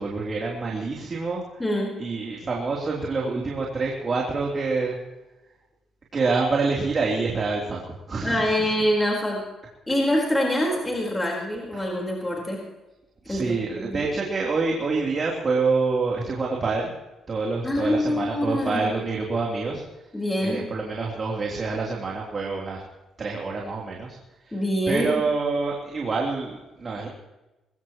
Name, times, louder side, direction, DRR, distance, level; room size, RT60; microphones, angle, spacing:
voice 1, 0.0-1.4 2.0-5.0 6.1-8.4 11.7-11.8 13.2-16.9 17.3-19.8 20.4-22.8 23.2-24.2 24.5-24.6 24.9-27.1, right 4 dB, 40° right, -2 dB, 3.4 m, -26 dB
voice 2, 1.6-1.9 8.2-9.4 9.9-12.6 13.3-14.0 17.6-18.9 20.1-20.6 24.5-25.1, left 1 dB, 15° left, -2 dB, 4.5 m, -25 dB
22.0 x 16.5 x 3.1 m, 1.0 s
cardioid pair, 90°, 0 cm